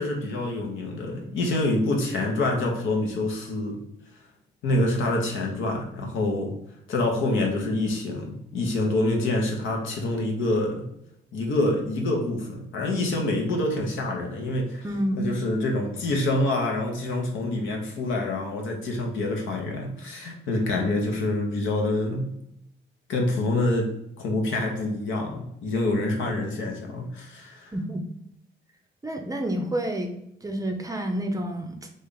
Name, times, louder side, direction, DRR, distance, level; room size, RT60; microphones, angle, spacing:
voice 1, 0.0-3.8 4.6-6.5 6.9-10.9 11.3-14.9 15.2-22.3 23.1-27.7, left 2 dB, 75° left, 1 dB, 0.9 m, -26 dB
voice 2, 14.8-15.3 27.7-28.0 29.0-30.1 30.4-31.8, right 1 dB, 15° right, 4 dB, 0.5 m, -28 dB
3.2 x 2.5 x 3.8 m, 0.79 s
cardioid pair, 90°, 20 cm